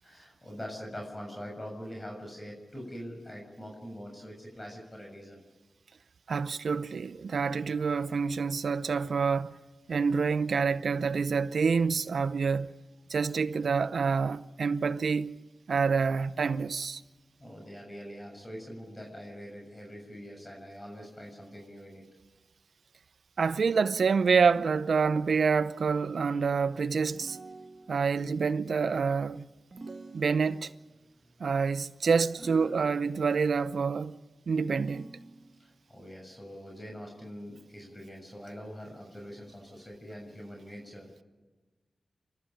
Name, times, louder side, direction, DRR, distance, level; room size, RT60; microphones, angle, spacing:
voice 1, 0.0-5.4 7.5-8.1 17.4-22.0 26.3-26.4 32.0-32.2 32.4-32.9 35.6-41.1, equal, 25° left, 6.9 m, -44 dB
voice 2, 6.3-9.5 9.9-12.7 13.1-15.4 15.7-17.0 23.4-27.4 27.9-29.4 30.1-30.7 31.4-34.2 34.5-35.1, right 5 dB, 80° right, 0.7 m, -27 dB
sound 1, 27.1-28.2 29.7-30.9 32.3-33.4 34.8-35.7, right 3 dB, 65° right, 2.2 m, -47 dB
29.0 x 13.0 x 9.1 m
cardioid pair, 50°, 0 cm